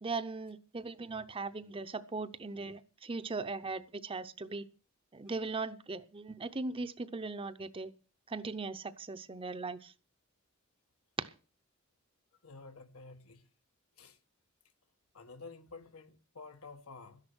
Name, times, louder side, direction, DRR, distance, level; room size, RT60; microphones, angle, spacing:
voice 1, 0.0-4.7 5.1-7.9 8.3-9.9 11.2-11.3, right 3 dB, 25° right, 0.7 m, -39 dB
voice 2, 12.4-13.4 14.0-14.2 15.1-17.2, left 4 dB, 90° left, 1.6 m, -50 dB
13.0 x 10.5 x 6.1 m
head